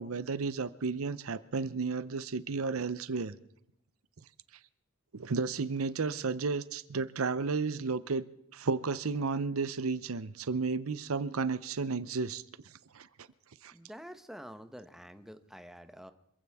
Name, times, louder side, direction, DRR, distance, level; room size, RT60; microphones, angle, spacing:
voice 1, 0.0-3.3 5.1-8.2 8.5-12.4 12.9-13.1 13.6-13.7, right 4 dB, 85° right, 15 dB, 0.7 m, -32 dB
voice 2, 13.7-16.1, equal, ahead, 8 dB, 0.9 m, -48 dB
26.0 x 15.5 x 3.6 m, 0.80 s
head